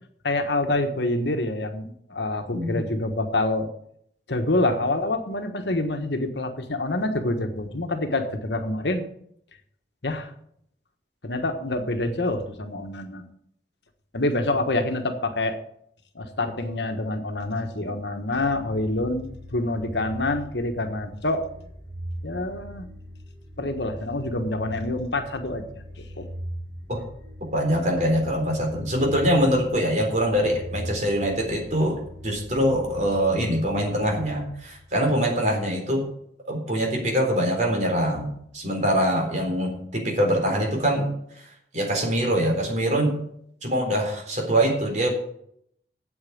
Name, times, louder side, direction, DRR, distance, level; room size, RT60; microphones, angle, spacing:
voice 1, 0.2-3.7 4.3-9.0 10.0-10.3 11.2-13.3 14.1-15.6 16.1-21.5 22.2-22.9 23.6-25.8 26.2-26.3, left 2 dB, 70° left, 7 dB, 1.4 m, -26 dB
sound 1, 18.2-35.1, equal, 20° right, 6.0 m, -40 dB
voice 2, 27.5-36.0 36.5-41.1 41.7-43.2 43.6-45.1, equal, 40° right, 1 dB, 3.9 m, -24 dB
8.8 x 8.2 x 8.6 m, 0.70 s
head